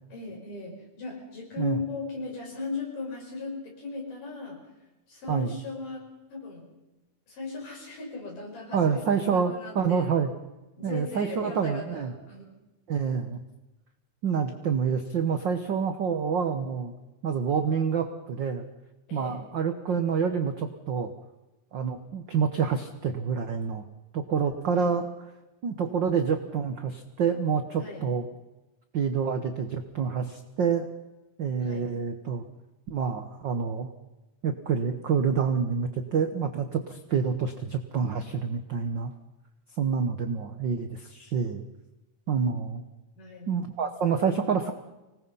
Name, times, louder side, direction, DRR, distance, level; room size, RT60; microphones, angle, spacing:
voice 1, 0.1-4.6 5.1-6.0 6.3-6.7 7.3-10.1 10.8-12.6 19.1-19.4 24.7-24.9 27.8-28.1 31.6-31.9 43.2-43.5, left 4 dB, 75° left, -1 dB, 7.3 m, -37 dB
voice 2, 8.7-10.3 10.8-12.1 12.9-13.4 14.2-16.9 17.2-18.7 19.1-21.1 21.7-23.8 24.1-25.1 25.6-28.3 28.9-30.9 31.4-32.4 32.9-33.9 34.4-39.1 39.8-41.6 42.3-42.8 43.5-44.7, right 6 dB, 90° right, 7 dB, 1.0 m, -27 dB
25.0 x 19.5 x 5.5 m, 1.0 s
omnidirectional pair, 3.8 m